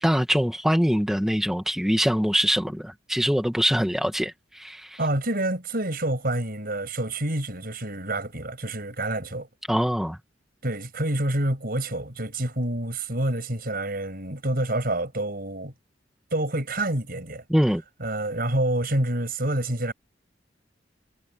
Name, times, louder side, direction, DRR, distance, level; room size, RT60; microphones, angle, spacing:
voice 1, 0.0-5.0 9.7-10.2 17.5-17.8, equal, ahead, 1.2 m, -23 dB
voice 2, 5.0-9.5 10.6-15.7 16.3-17.4 18.0-19.9, right 1 dB, 55° right, 7.0 m, -27 dB
head